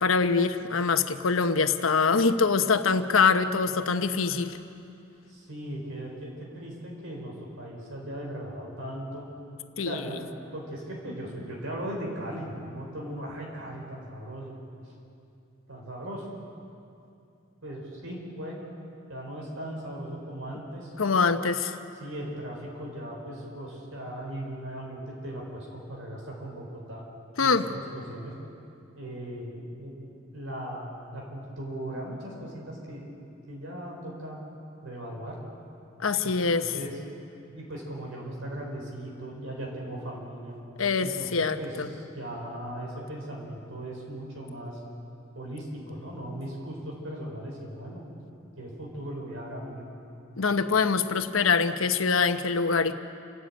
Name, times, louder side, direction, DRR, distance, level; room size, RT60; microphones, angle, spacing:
voice 1, 0.0-4.6 9.8-9.9 21.0-21.8 27.4-27.6 36.0-36.7 40.8-41.9 50.4-52.9, left 5 dB, 90° left, 9 dB, 1.1 m, -24 dB
voice 2, 5.3-9.3 9.8-10.2 10.5-14.6 15.7-16.3 17.6-18.6 19.1-20.9 22.0-27.0 27.4-28.3 28.9-34.4 34.8-35.4 36.2-37.0 37.5-40.6 41.0-44.8 45.3-48.0 48.6-49.9, right 1 dB, 80° right, -2 dB, 4.9 m, -38 dB
29.5 x 12.5 x 8.9 m, 2.6 s
head